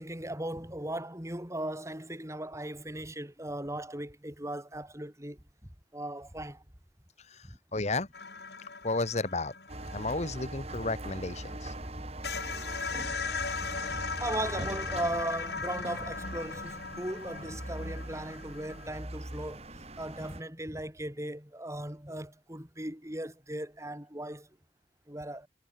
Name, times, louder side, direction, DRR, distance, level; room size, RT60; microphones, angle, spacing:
voice 1, 0.0-5.4 5.9-6.6 7.4-7.6 11.9-12.1 13.9-19.6 20.0-24.5 25.1-25.5, right 1 dB, 15° right, 4.4 m, -37 dB
voice 2, 7.3-8.1 8.8-9.5 9.9-11.7, left 2 dB, 40° left, 1.5 m, -33 dB
sound 1, 8.1-11.5 11.9-12.0 12.2-19.0, left 4 dB, 65° left, 5.8 m, -38 dB
sound 2, 9.7-20.4, right 1 dB, 35° right, 4.7 m, -41 dB
head